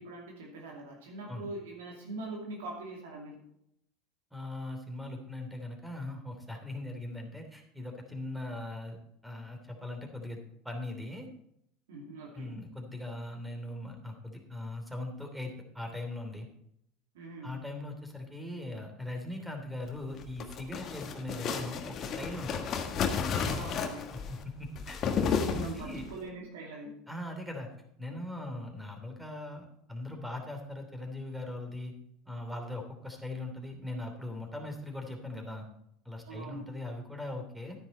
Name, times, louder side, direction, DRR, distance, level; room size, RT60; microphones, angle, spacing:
voice 1, 0.0-3.4 11.9-12.6 17.1-17.6 23.3-24.1 25.3-26.9 36.3-36.8, right 2 dB, 75° right, -1 dB, 2.5 m, -43 dB
voice 2, 4.3-9.0 9.2-10.4 10.6-11.3 12.3-16.5 17.4-22.6 24.1-26.0 27.1-27.7 28.0-31.9 32.3-35.7 36.0-37.8, left 1 dB, 5° right, 4 dB, 3.1 m, -40 dB
sound 1, 20.1-26.1, left 6 dB, 45° left, 1.5 m, -33 dB
11.0 x 9.9 x 4.4 m, 0.75 s
hypercardioid pair, 80°, 0 cm